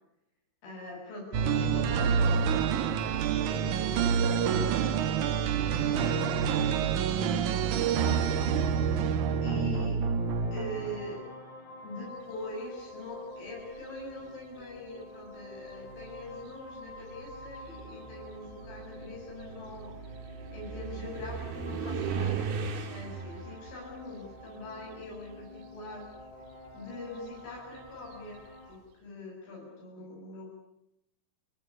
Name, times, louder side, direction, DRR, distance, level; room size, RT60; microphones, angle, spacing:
voice 1, 0.6-5.0 5.7-9.1 9.4-10.0 10.5-11.2 11.8-20.0 20.5-26.1 26.7-30.5, left 1 dB, 90° left, -3 dB, 10.0 m, -43 dB
sound 1, 1.3-11.2, right 7 dB, 85° right, 1.7 m, -27 dB
sound 2, 9.9-28.7, left 2 dB, 60° left, 6.2 m, -48 dB
sound 3, 13.5-14.0 15.0-15.1 15.7-25.6 25.9-28.5, right 6 dB, 55° right, 4.0 m, -39 dB
28.5 x 18.5 x 10.0 m, 0.80 s
omnidirectional pair, 5.5 m